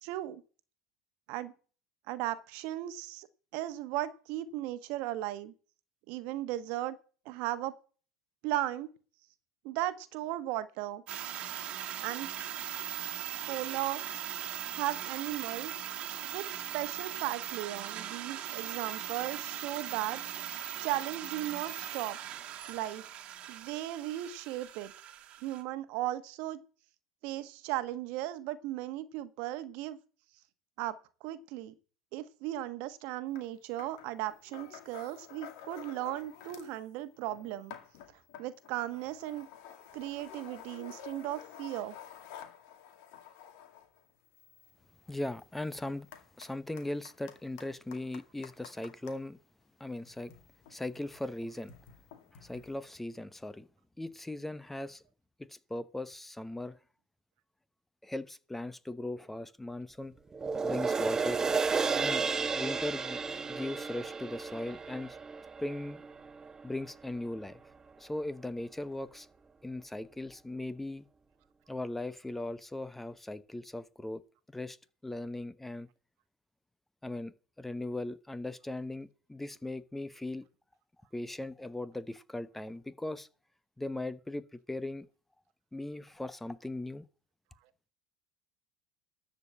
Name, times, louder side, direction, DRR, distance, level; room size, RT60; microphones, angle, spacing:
voice 1, 0.0-0.4 1.3-1.5 2.1-3.3 3.5-5.5 6.1-7.0 7.2-7.8 8.4-8.9 9.6-11.0 12.0-12.3 13.5-14.0 14.7-15.7 16.3-20.2 20.8-22.2 22.7-23.0 23.5-24.9 25.4-26.6 27.2-30.0 30.8-31.7 32.1-37.7 38.4-39.5 39.9-41.9, right 14 dB, 65° right, 1.2 m, -36 dB
sound 1, 11.1-25.6, right 11 dB, 50° right, 1.6 m, -40 dB
sound 2, 33.4-33.5 33.8-36.8 37.1-49.2 50.0-52.7, left 9 dB, 70° left, 2.3 m, -51 dB
voice 2, 45.1-46.1 46.4-49.4 49.8-50.3 50.7-51.7 52.4-53.7 54.0-55.0 55.4-56.8 58.0-60.1 60.6-61.4 62.0-62.2 62.5-63.2 63.5-65.2 65.6-66.0 66.6-67.6 68.0-69.3 69.6-71.0 71.7-74.2 74.5-74.8 75.0-75.9 77.0-80.5 81.1-83.3 83.8-85.1 85.7-87.0, left 2 dB, 10° left, 0.8 m, -38 dB
sound 3, 60.3-66.9 67.3-67.4, right 5 dB, 20° right, 0.8 m, -33 dB
13.0 x 5.0 x 8.3 m
hypercardioid pair, 90°, 3 cm